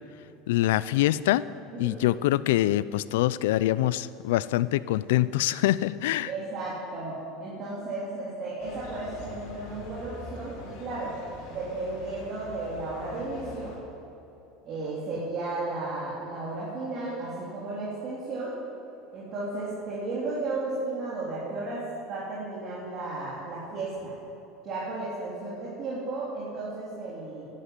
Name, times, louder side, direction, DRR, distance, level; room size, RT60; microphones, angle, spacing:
voice 1, 0.5-1.5 1.8-6.3, left 15 dB, 90° left, 17 dB, 0.4 m, -24 dB
voice 2, 6.3-11.1 11.5-13.7 14.6-18.6 19.1-21.8 22.1-24.1 24.6-27.5, right 2 dB, 45° right, -7 dB, 3.6 m, -34 dB
sound 1, 8.6-13.8, left 3 dB, 75° left, 4.1 m, -44 dB
11.5 x 10.5 x 9.3 m, 2.9 s
supercardioid pair, 135°, 0 cm